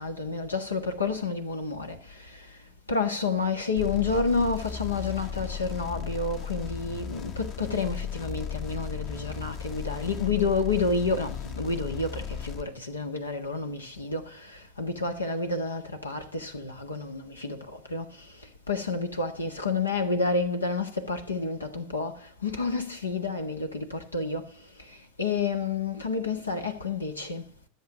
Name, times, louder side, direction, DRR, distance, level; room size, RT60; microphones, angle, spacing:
voice 1, 0.0-2.6 2.9-27.5, left 4 dB, 85° left, 1.5 m, -30 dB
sound 1, 3.8-12.6, left 7 dB, 45° left, 1.3 m, -36 dB
13.5 x 7.5 x 6.2 m
figure-of-eight pair, 85°, 0 cm